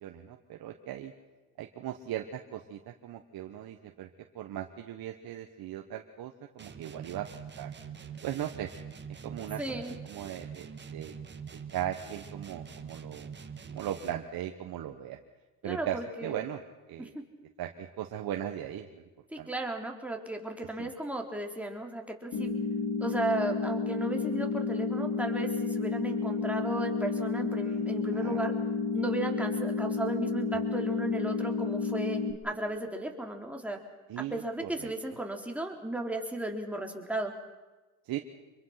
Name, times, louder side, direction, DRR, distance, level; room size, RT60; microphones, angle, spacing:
voice 1, 0.0-1.1 1.6-4.1 4.3-7.3 7.6-7.7 8.2-8.7 9.2-11.2 11.5-13.3 13.7-15.2 15.6-16.6 16.9-17.1 17.6-19.0 19.4-19.5 20.8-20.9 27.7-27.8 28.1-28.4 34.1-34.9 38.0-38.2, right 11 dB, 60° right, 4 dB, 1.5 m, -38 dB
sound 1, 6.6-14.3, right 6 dB, 25° right, 1.8 m, -44 dB
voice 2, 9.6-10.0 15.6-16.4 17.0-17.1 19.3-22.5 23.0-28.5 28.9-33.8 34.2-37.3, right 1 dB, 5° right, 2 dB, 3.6 m, -35 dB
sound 2, 22.3-32.3, left 4 dB, 60° left, 3.2 m, -31 dB
26.0 x 22.5 x 6.0 m, 1.2 s
supercardioid pair, 85°, 40 cm